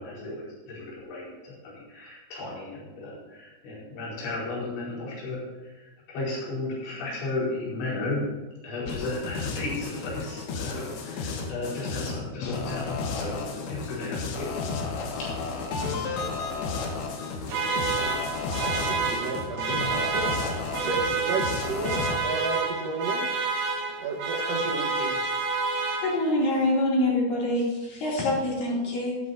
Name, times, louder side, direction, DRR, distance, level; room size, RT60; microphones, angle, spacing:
voice 1, 0.0-8.2 8.6-14.6 15.2-15.3, left 2 dB, 85° left, -7 dB, 7.1 m, -34 dB
sound 1, 8.9-22.2, left 4 dB, 70° left, 2.9 m, -33 dB
sound 2, 17.5-26.5, right 4 dB, 85° right, 1.5 m, -29 dB
voice 2, 18.8-20.5 20.8-23.2 24.0-25.1, right 3 dB, 70° right, 1 dB, 1.6 m, -32 dB
voice 3, 26.0-29.2, left 1 dB, 55° left, -5 dB, 4.4 m, -25 dB
13.5 x 13.0 x 2.8 m, 1.2 s
omnidirectional pair, 5.1 m